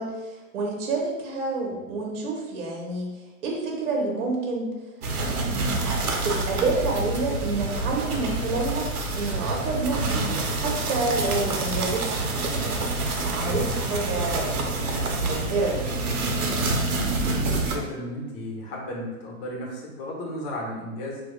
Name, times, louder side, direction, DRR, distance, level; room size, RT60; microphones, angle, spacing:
voice 1, 0.0-3.1 3.4-4.7 5.2-8.9 9.2-10.3 10.6-12.8 13.2-16.0, right 3 dB, 60° right, 0 dB, 1.0 m, -29 dB
sound 1, 5.0-17.8, right 2 dB, 85° right, 0.7 m, -27 dB
voice 2, 17.3-21.2, left 1 dB, 35° left, -2 dB, 1.1 m, -34 dB
4.6 x 2.4 x 2.2 m, 1.1 s
hypercardioid pair, 120°, 43 cm